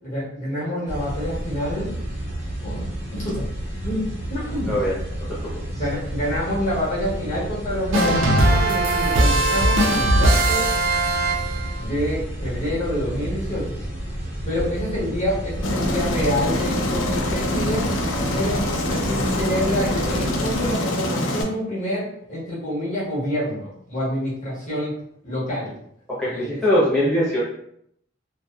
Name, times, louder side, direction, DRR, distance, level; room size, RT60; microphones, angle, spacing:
voice 1, 0.0-1.9 2.6-2.8 3.1-3.4 3.8-4.8 5.7-10.7 11.8-13.8 14.5-17.9 18.3-25.0 25.2-25.8 26.2-26.6, equal, 40° left, -7 dB, 1.1 m, -27 dB
sound 1, 0.9-20.8, right 1 dB, 35° right, 0.7 m, -31 dB
voice 2, 4.7-5.6 26.1-27.4, equal, ahead, -10 dB, 0.5 m, -22 dB
sound 2, 7.9-11.8, right 1 dB, 80° right, 0.5 m, -19 dB
Aircraft, 15.6-21.4, left 1 dB, 75° left, 0.4 m, -25 dB
2.7 x 2.1 x 2.3 m, 0.69 s
head